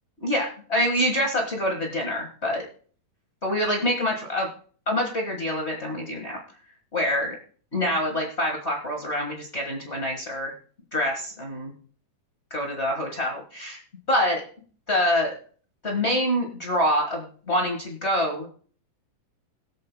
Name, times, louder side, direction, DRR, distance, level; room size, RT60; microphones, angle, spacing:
voice 1, 0.2-2.7 3.4-4.5 4.9-6.4 6.9-7.3 7.7-10.5 10.9-11.7 12.5-13.8 14.1-14.4 14.9-15.3 15.8-18.5, equal, 55° left, 0 dB, 0.7 m, -26 dB
22.0 x 7.6 x 2.2 m, 0.44 s
omnidirectional pair, 4.1 m